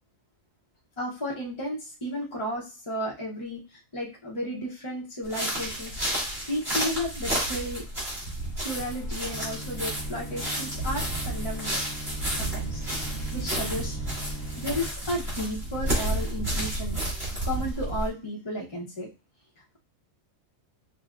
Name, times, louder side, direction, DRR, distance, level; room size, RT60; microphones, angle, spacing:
voice 1, 1.0-3.6 3.9-5.9 6.5-7.8 8.6-11.8 12.4-12.8 13.3-14.0 14.6-17.0 17.4-19.1, equal, 25° left, -3 dB, 0.7 m, -33 dB
sound 1, 5.2-18.1, right 1 dB, 50° right, 2.3 m, -31 dB
sound 2, 8.8-14.9, equal, 70° left, 1.2 m, -41 dB
6.2 x 2.2 x 2.4 m, 0.32 s
omnidirectional pair, 1.4 m